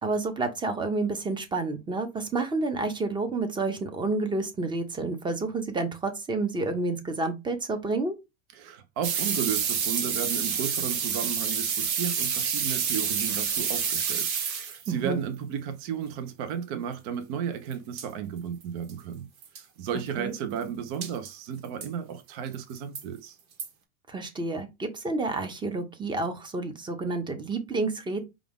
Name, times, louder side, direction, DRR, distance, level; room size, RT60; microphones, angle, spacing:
voice 1, 0.0-8.1 14.9-15.2 20.2-20.3 24.1-28.2, right 3 dB, 10° right, 0.7 m, -29 dB
voice 2, 8.5-19.3 19.5-23.4, right 8 dB, 55° right, 0.7 m, -34 dB
sound 1, 9.0-14.9 17.7-17.8 18.0-18.1 18.6-18.7 18.9-19.0 19.4-19.6 21.0-21.3 21.8-21.9 22.5-23.0 23.6-23.7, right 7 dB, 80° right, 1.3 m, -28 dB
4.9 x 2.4 x 3.5 m
supercardioid pair, 125°, 41 cm